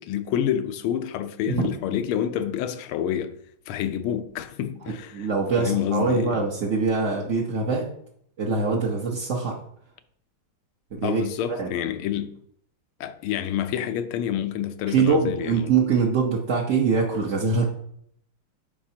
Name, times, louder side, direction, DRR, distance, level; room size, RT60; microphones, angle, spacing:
voice 1, 0.0-3.4 3.7-5.3 5.6-6.4 11.0-12.4 13.0-15.7, left 10 dB, 80° left, 1.5 m, -28 dB
voice 2, 5.1-7.9 8.4-9.6 10.9-11.2 11.6-11.7 14.9-17.6, right 4 dB, 50° right, 0.9 m, -23 dB
10.0 x 5.3 x 2.8 m
omnidirectional pair, 2.3 m